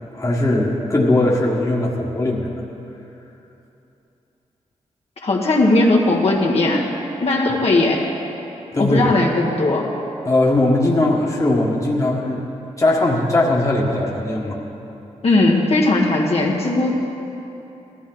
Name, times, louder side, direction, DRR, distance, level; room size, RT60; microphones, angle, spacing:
voice 1, 0.1-2.5 8.7-9.1 10.2-12.4 12.8-14.6, left 2 dB, 25° left, -2 dB, 1.7 m, -19 dB
voice 2, 5.2-6.8 7.2-8.0 8.8-9.9 15.2-16.9, left 2 dB, 60° left, -2 dB, 1.7 m, -17 dB
18.0 x 14.0 x 3.9 m, 2.9 s
wide cardioid pair, 100°, 12 cm